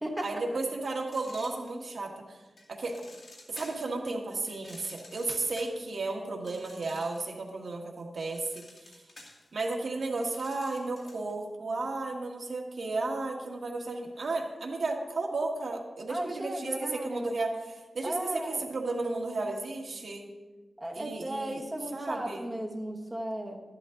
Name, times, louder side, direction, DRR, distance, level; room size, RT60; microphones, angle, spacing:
voice 1, 0.2-2.4 2.7-3.0 3.5-9.0 9.5-20.3 20.9-21.6 21.9-22.5, right 3 dB, 65° right, 0 dB, 1.7 m, -34 dB
sound 1, 1.0-2.1 2.6-3.9 4.5-7.4 7.7-11.3, left 2 dB, 45° left, 2.4 m, -52 dB
voice 2, 16.1-17.3 18.0-18.6 20.8-23.6, right 1 dB, 15° right, 0 dB, 1.3 m, -35 dB
13.5 x 11.5 x 3.9 m, 1.3 s
wide cardioid pair, 180°, 0 cm